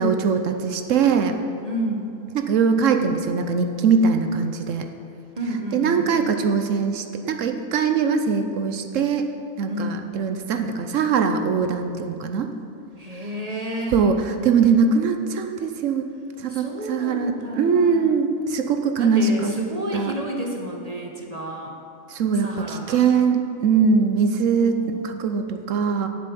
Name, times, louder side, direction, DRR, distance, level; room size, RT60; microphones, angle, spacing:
voice 1, 0.0-1.4 2.3-4.9 5.7-9.3 9.6-12.5 13.9-16.1 16.4-19.5 19.9-20.1 22.1-26.1, right 5 dB, 60° right, 6 dB, 0.9 m, -21 dB
voice 2, 1.6-2.1 5.4-6.1 9.7-10.0 13.0-14.0 16.5-18.1 19.0-21.8 22.4-23.0 24.6-25.0, right 1 dB, 30° right, 0 dB, 0.8 m, -30 dB
7.7 x 7.1 x 8.3 m, 2.7 s
omnidirectional pair, 1.7 m